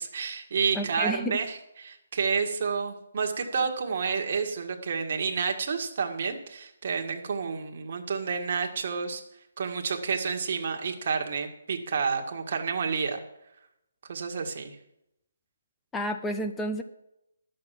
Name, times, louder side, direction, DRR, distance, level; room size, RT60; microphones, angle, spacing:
voice 1, 0.0-9.2 9.6-13.2 14.1-14.8, right 5 dB, 45° right, 3 dB, 1.7 m, -30 dB
voice 2, 0.7-1.4 15.9-16.8, equal, 5° left, 7 dB, 0.7 m, -30 dB
12.0 x 6.8 x 7.5 m, 0.84 s
hypercardioid pair, 170°, 0 cm